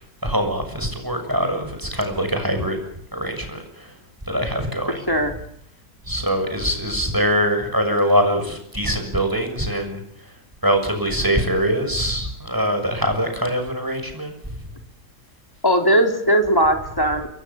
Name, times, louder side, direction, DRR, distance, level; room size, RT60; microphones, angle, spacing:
voice 1, 0.2-2.8 3.1-3.9 4.3-5.0 6.1-10.0 10.6-14.3, equal, 10° right, 5 dB, 6.8 m, -23 dB
voice 2, 15.6-17.3, equal, 10° left, 4 dB, 3.9 m, -18 dB
28.5 x 24.0 x 7.3 m, 0.70 s
omnidirectional pair, 2.1 m